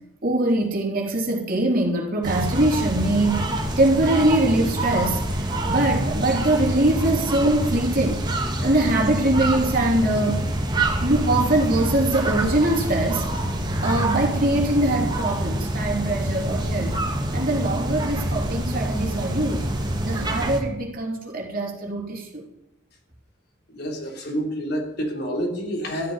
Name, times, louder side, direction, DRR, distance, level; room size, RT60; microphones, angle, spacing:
voice 1, 0.2-3.4 3.8-5.4 5.7-8.2 8.6-10.5 11.0-17.0 17.3-19.7 20.0-22.4, right 1 dB, 45° right, 0 dB, 3.1 m, -22 dB
sound 1, 2.2-20.6, right 1 dB, 20° right, 1.8 m, -26 dB
voice 2, 23.7-26.1, equal, 55° left, 1 dB, 3.4 m, -28 dB
13.0 x 7.6 x 9.6 m, 0.85 s
head